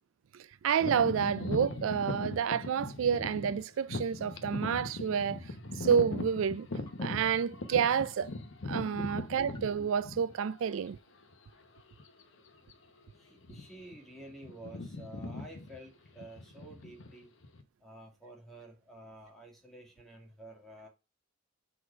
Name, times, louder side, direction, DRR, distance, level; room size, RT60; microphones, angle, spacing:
voice 1, 0.3-5.4 5.7-6.7 7.0-8.3 8.7-11.0, right 7 dB, 85° right, 0.4 m, -29 dB
sound 1, 0.8-10.6 11.2-11.3 12.0-12.2 12.5-12.7 13.4-13.9 14.2-17.6, left 2 dB, 70° left, 0.9 m, -39 dB
sound 2, 3.1-3.6 4.0-4.2 5.0-5.5 5.8-6.1 6.9-7.3 7.7-8.1 8.7-9.1 9.5-9.9, left 1 dB, 20° left, 1.2 m, -51 dB
voice 2, 13.1-17.3 17.8-20.9, right 1 dB, ahead, 2.2 m, -50 dB
4.7 x 4.2 x 5.9 m
head